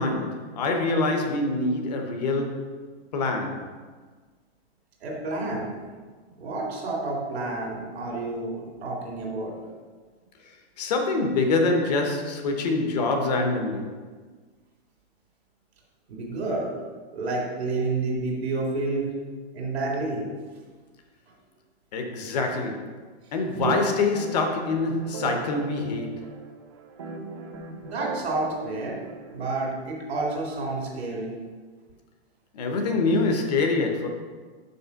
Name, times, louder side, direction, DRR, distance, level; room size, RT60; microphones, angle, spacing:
voice 1, 0.0-2.8 3.1-3.7 10.8-14.0 21.9-23.0 23.3-26.4 32.5-34.1, left 3 dB, 40° left, 0.8 m, -25 dB
voice 2, 5.0-5.7 6.4-9.5 16.1-16.7 17.1-19.1 19.5-20.3 23.5-23.8 27.8-29.0 29.3-31.3, right 3 dB, 80° right, 2.0 m, -29 dB
sound 1, 24.2-29.8, right 4 dB, 30° right, 0.4 m, -39 dB
5.5 x 4.2 x 5.6 m
supercardioid pair, 175°, 31 cm